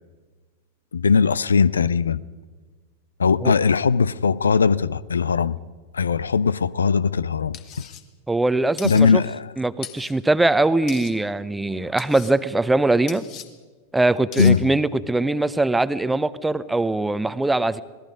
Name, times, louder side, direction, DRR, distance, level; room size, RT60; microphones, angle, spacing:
voice 1, 0.9-2.2 3.2-5.6 5.9-7.6 8.8-9.5 14.4-14.6, left 5 dB, 70° left, 0.6 m, -19 dB
sound 1, 7.5-8.0 8.8-9.0 9.8-10.1 10.9-11.1 12.0-12.3 13.1-13.5 14.3-14.5, left 10 dB, 35° left, 1.8 m, -38 dB
voice 2, 8.3-9.2 9.6-13.2 13.9-17.8, right 2 dB, 5° right, 0.8 m, -21 dB
26.5 x 19.5 x 5.1 m
figure-of-eight pair, 90°, 0 cm